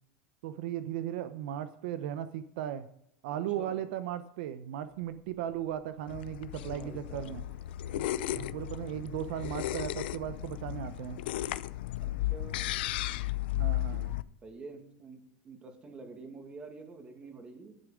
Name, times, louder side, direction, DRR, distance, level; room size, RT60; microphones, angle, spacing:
voice 1, 0.4-2.9 3.2-7.4 7.9-8.1 8.3-11.2 13.5-14.2, right 11 dB, 70° right, 11 dB, 0.7 m, -37 dB
voice 2, 3.3-3.8 6.6-7.4 12.0-12.7 14.4-17.7, right 3 dB, 20° right, 4 dB, 2.2 m, -48 dB
sound 1, 4.9-11.4, left 1 dB, ahead, 2.9 m, -55 dB
sound 2, 6.1-14.2, left 15 dB, 85° left, 0.5 m, -35 dB
11.0 x 10.0 x 5.0 m, 0.74 s
supercardioid pair, 155°, 5 cm